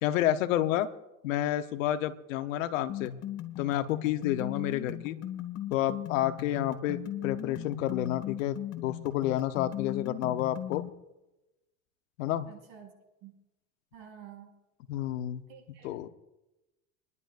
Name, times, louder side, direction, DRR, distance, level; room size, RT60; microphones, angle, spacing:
voice 1, 0.0-0.9 1.2-3.1 3.6-5.2 5.7-10.8 12.2-12.5 14.9-15.4 15.8-16.1, left 12 dB, 90° left, 9 dB, 1.0 m, -30 dB
sound 1, 2.9-10.9, left 11 dB, 40° left, 1.6 m, -38 dB
voice 2, 12.5-12.9 13.2-13.3 13.9-14.5 15.5-15.9, right 9 dB, 55° right, 0 dB, 6.0 m, -50 dB
30.0 x 11.0 x 2.5 m, 0.99 s
supercardioid pair, 120°, 38 cm